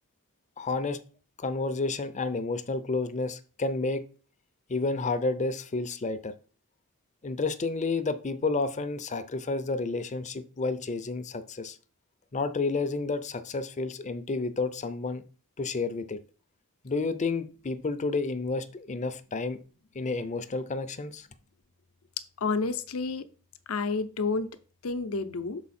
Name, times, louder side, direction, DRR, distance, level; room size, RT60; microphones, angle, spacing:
voice 1, 0.6-1.0 1.4-4.0 4.7-6.3 7.2-11.8 12.3-15.2 15.6-16.2 16.8-19.6 19.9-21.3, left 3 dB, 35° left, 12 dB, 0.5 m, -30 dB
voice 2, 22.4-23.2 23.7-24.5 24.8-25.6, left 4 dB, 80° left, 10 dB, 0.7 m, -29 dB
6.6 x 4.8 x 4.2 m, 0.38 s
head